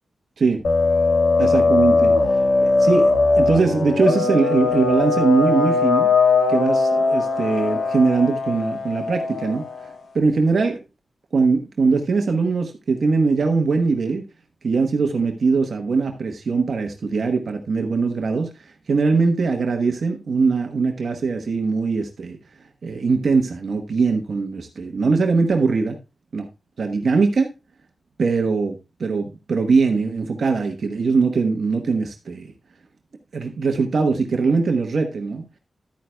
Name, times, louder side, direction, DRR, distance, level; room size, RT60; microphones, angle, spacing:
sound 1, 0.6-9.9, left 3 dB, 70° left, 1.4 m, -19 dB
voice 1, 1.4-2.1 2.6-6.1 6.5-9.7 10.1-10.8 11.3-14.2 14.6-22.4 22.8-26.0 26.3-26.5 26.8-27.5 28.2-32.5 33.3-35.5, right 4 dB, 55° right, 4 dB, 1.1 m, -21 dB
12.0 x 9.4 x 2.2 m, 0.27 s
wide cardioid pair, 170°, 0 cm